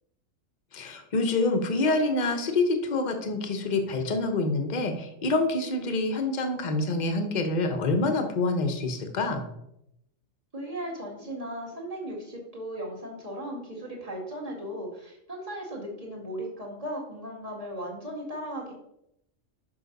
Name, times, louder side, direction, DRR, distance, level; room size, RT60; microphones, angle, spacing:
voice 1, 0.7-9.5, left 2 dB, 40° left, 5 dB, 1.0 m, -26 dB
voice 2, 10.5-18.7, right 1 dB, 30° right, -3 dB, 2.2 m, -37 dB
6.8 x 5.5 x 5.2 m, 0.80 s
omnidirectional pair, 1.3 m